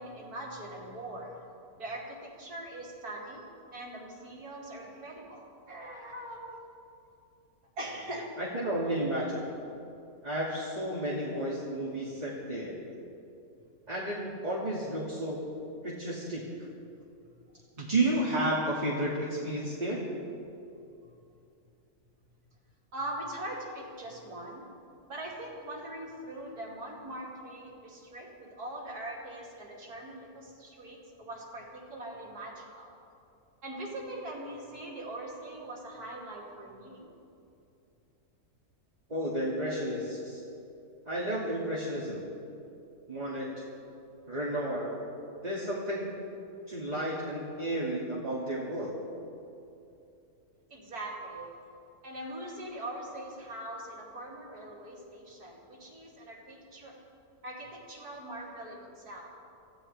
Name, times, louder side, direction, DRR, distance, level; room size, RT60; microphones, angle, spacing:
voice 1, 0.0-1.3 1.8-6.6 7.8-8.3 17.8-17.9 21.0-21.1 22.9-24.7 25.1-32.9 33.6-37.1 50.7-51.6 52.0-56.9 57.4-59.3, right 1 dB, 90° right, -3 dB, 3.2 m, -42 dB
voice 2, 8.4-9.5 10.2-12.8 13.9-15.4 15.8-16.4 17.8-20.0 39.1-40.4 41.1-42.2 43.1-43.5 44.3-44.9 45.4-46.1 46.7-48.9, right 1 dB, 30° right, -6 dB, 2.2 m, -32 dB
25.0 x 16.0 x 3.3 m, 2.7 s
omnidirectional pair, 1.6 m